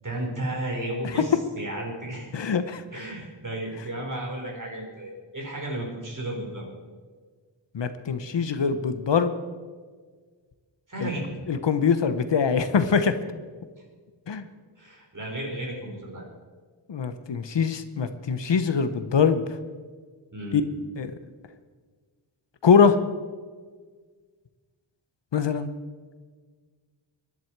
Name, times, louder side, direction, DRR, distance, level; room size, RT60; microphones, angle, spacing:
voice 1, 0.0-2.3 2.9-6.6 10.9-11.5 14.8-16.2 20.3-20.6, right 1 dB, 40° right, -1 dB, 4.6 m, -33 dB
voice 2, 2.3-2.8 7.7-9.3 11.0-11.1 11.5-13.1 14.3-14.4 16.9-19.4 20.5-20.6 21.0-21.1 22.6-23.0 25.3-25.7, left 6 dB, 65° left, 10 dB, 0.9 m, -23 dB
21.0 x 11.0 x 4.6 m, 1.5 s
wide cardioid pair, 100°, 47 cm